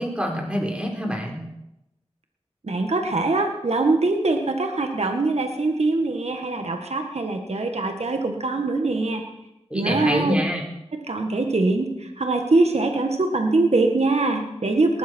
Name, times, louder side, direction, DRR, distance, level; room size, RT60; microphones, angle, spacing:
voice 1, 0.0-1.4 9.7-10.6, equal, 10° right, 0 dB, 4.5 m, -25 dB
voice 2, 2.6-9.2 9.7-10.3 11.1-15.0, right 3 dB, 75° right, 4 dB, 1.8 m, -23 dB
19.0 x 13.5 x 4.6 m, 0.87 s
wide cardioid pair, 45°, 11 cm